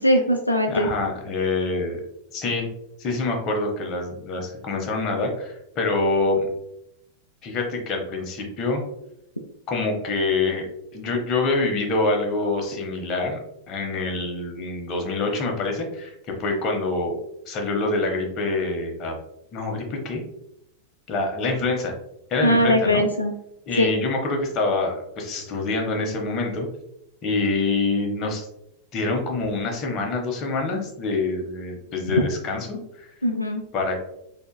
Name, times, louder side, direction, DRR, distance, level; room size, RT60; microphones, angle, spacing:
voice 1, 0.0-0.9 22.4-23.3 23.8-23.9 33.2-33.6, equal, 85° left, 2 dB, 0.3 m, -20 dB
voice 2, 0.7-2.0 2.3-2.7 3.0-6.5 7.4-8.8 9.7-10.7 10.9-13.4 13.7-17.2 17.5-19.1 19.5-20.2 21.1-21.9 22.3-23.1 23.7-26.7 27.2-28.5 28.9-33.1 33.7-34.0, left 3 dB, 35° left, 1 dB, 0.8 m, -26 dB
3.7 x 2.8 x 2.2 m, 0.79 s
figure-of-eight pair, 90°, 0 cm